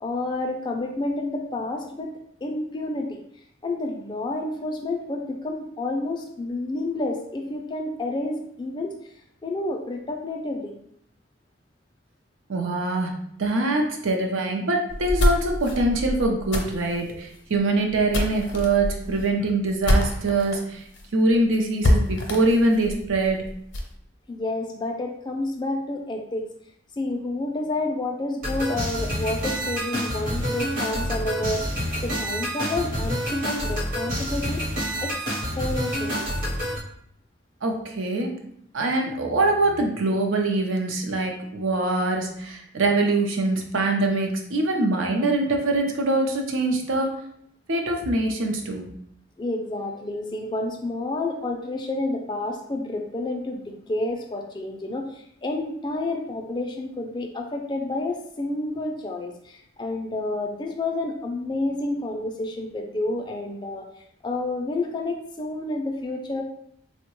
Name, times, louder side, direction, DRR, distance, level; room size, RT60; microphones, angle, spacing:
voice 1, 0.0-2.1 2.4-3.2 3.6-8.9 9.4-10.7 24.3-26.5 27.0-31.6 32.0-34.6 35.0-35.1 35.6-36.3 49.4-63.8 64.2-66.4, left 2 dB, 25° left, 2 dB, 0.3 m, -29 dB
voice 2, 12.5-13.1 13.4-20.8 21.1-23.4 37.6-38.3 38.7-47.1 47.7-48.9, right 2 dB, 85° right, 2 dB, 0.6 m, -23 dB
sound 1, 14.9-20.6 20.9-21.0 21.3-21.4 21.8-23.9, left 1 dB, 65° left, 0.6 m, -25 dB
sound 2, 28.4-36.8, equal, 45° right, 0.8 m, -28 dB
3.7 x 2.1 x 2.9 m, 0.70 s
head